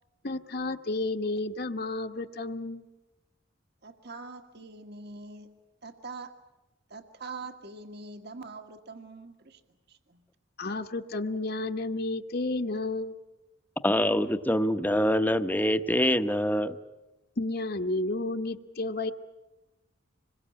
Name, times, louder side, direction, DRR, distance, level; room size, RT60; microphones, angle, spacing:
voice 1, 0.2-2.9 10.6-13.2 17.4-19.1, left 2 dB, 50° left, 6 dB, 1.2 m, -31 dB
voice 2, 3.8-5.5 5.8-6.4 6.9-9.6 9.9-10.2, right 3 dB, 55° right, 7 dB, 1.7 m, -43 dB
voice 3, 13.8-16.8, equal, 10° left, 9 dB, 0.8 m, -25 dB
26.5 x 22.0 x 8.6 m, 1.0 s
head